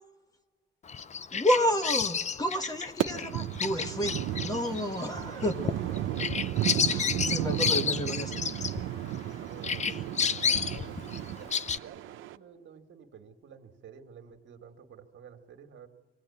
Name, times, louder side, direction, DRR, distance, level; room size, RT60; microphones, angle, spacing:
Bird vocalization bird call bird song, 0.9-9.3 9.6-11.8, left 6 dB, 35° left, 0.6 m, -31 dB
voice 1, 1.3-5.9 6.9-8.3 9.9-10.0, left 1 dB, 20° left, 7 dB, 1.3 m, -30 dB
sound 1, 3.0-12.4, right 13 dB, 90° right, 0.7 m, -34 dB
voice 2, 6.1-6.9 7.2-8.0 9.4-15.9, right 7 dB, 70° right, 5 dB, 1.8 m, -51 dB
24.5 x 18.0 x 8.6 m, 1.5 s
cardioid pair, 90°, 20 cm